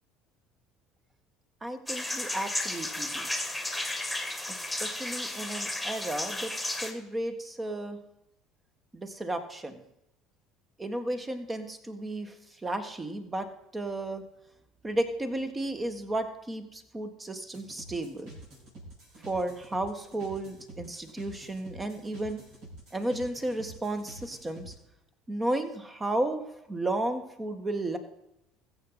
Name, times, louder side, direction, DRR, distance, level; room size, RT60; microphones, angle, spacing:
voice 1, 1.6-3.3 4.5-6.5 6.8-8.0 8.9-9.8 10.8-12.3 12.6-13.5 13.7-14.2 14.8-18.4 19.2-22.4 22.9-24.7 25.3-26.4 26.7-28.0, right 1 dB, 20° right, 8 dB, 1.7 m, -33 dB
sound 1, 1.9-6.9, left 1 dB, ahead, 2.1 m, -33 dB
sound 2, 17.5-24.7, right 1 dB, 60° right, 6.2 m, -48 dB
21.5 x 7.9 x 4.1 m, 0.83 s
figure-of-eight pair, 60°, 0 cm